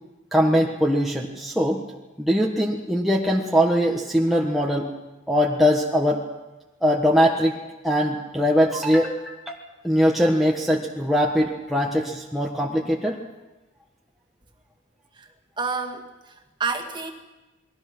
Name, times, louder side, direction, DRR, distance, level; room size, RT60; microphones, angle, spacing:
voice 1, 0.3-1.8 2.2-4.9 5.3-6.2 6.8-7.6 7.8-9.6 9.8-13.2, equal, ahead, -2 dB, 1.4 m, -21 dB
voice 2, 15.6-17.1, right 4 dB, 25° right, 2 dB, 2.1 m, -29 dB
28.5 x 21.0 x 6.1 m, 1.1 s
head